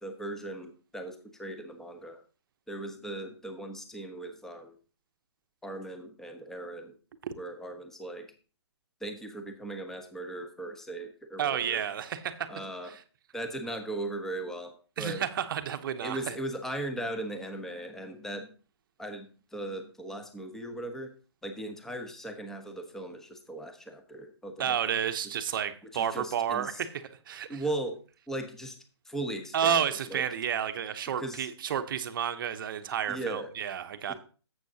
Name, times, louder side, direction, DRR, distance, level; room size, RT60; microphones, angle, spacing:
voice 1, 0.0-2.2 2.7-4.8 5.6-6.9 7.4-8.3 9.0-11.8 12.5-13.0 13.3-15.2 16.0-18.5 19.0-21.1 21.4-24.8 25.9-26.8 27.5-28.0 28.3-28.8 29.0-30.2 31.2-31.5 33.1-33.5 34.1-34.2, right 1 dB, 5° left, 0.9 m, -38 dB
voice 2, 11.4-12.5 15.0-16.4 24.6-26.9 27.3-27.6 29.5-34.1, right 8 dB, 50° right, 0.8 m, -31 dB
11.5 x 7.8 x 2.8 m
hypercardioid pair, 145°, 15 cm